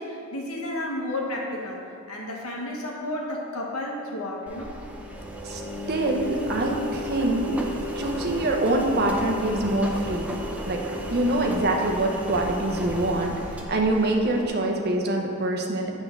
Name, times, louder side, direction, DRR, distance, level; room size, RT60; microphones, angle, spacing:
voice 1, 0.0-1.8 2.1-4.7, left 1 dB, 85° left, -1 dB, 1.3 m, -32 dB
Engine, 4.5-14.5, equal, 5° right, 0.6 m, -33 dB
voice 2, 5.9-7.7 8.0-10.4 10.6-10.8 11.1-15.9, right 2 dB, 50° right, 1 dB, 0.9 m, -25 dB
8.7 x 3.7 x 6.4 m, 2.5 s
head